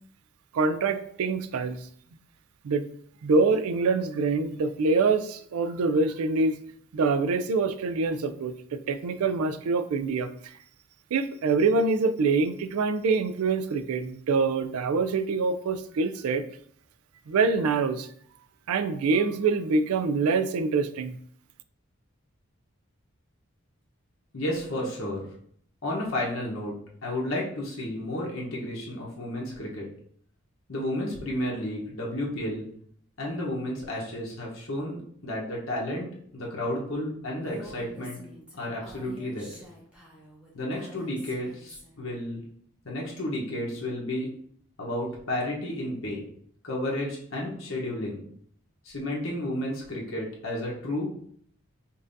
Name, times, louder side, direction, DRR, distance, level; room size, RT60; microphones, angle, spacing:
voice 1, 0.5-1.8 2.6-2.9 3.2-6.6 6.9-10.5 11.1-16.4 17.3-18.1 18.7-21.2, right 4 dB, 85° right, 9 dB, 0.4 m, -25 dB
voice 2, 24.3-25.3 25.8-26.7 27.0-29.9 30.7-32.7 33.2-36.1 36.3-38.2 38.5-39.5 40.5-42.4 42.8-44.3 44.8-46.2 46.6-48.2 48.8-51.1, left 1 dB, 70° left, -3 dB, 1.0 m, -32 dB
Female speech woman speaking, 37.4-42.1, equal, 5° right, 1.0 m, -47 dB
5.3 x 2.6 x 2.6 m, 0.63 s
head